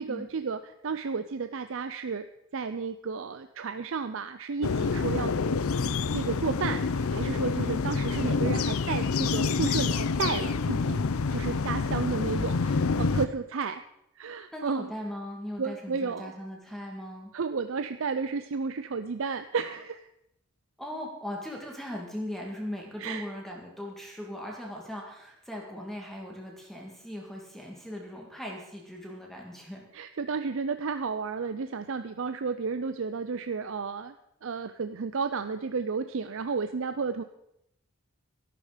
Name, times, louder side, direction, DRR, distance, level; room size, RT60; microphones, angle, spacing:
voice 1, 0.0-2.3 2.5-5.3 6.1-11.0 11.3-13.8 14.2-14.9 15.6-16.3 17.3-20.0 23.0-23.2 29.9-34.1 34.4-37.2, right 5 dB, 60° right, 10 dB, 0.5 m, -32 dB
sound 1, 4.6-13.3, left 4 dB, 75° left, 0.6 m, -27 dB
voice 2, 14.5-17.3 20.8-29.8, equal, ahead, -1 dB, 2.1 m, -39 dB
12.5 x 12.0 x 5.1 m, 0.80 s
head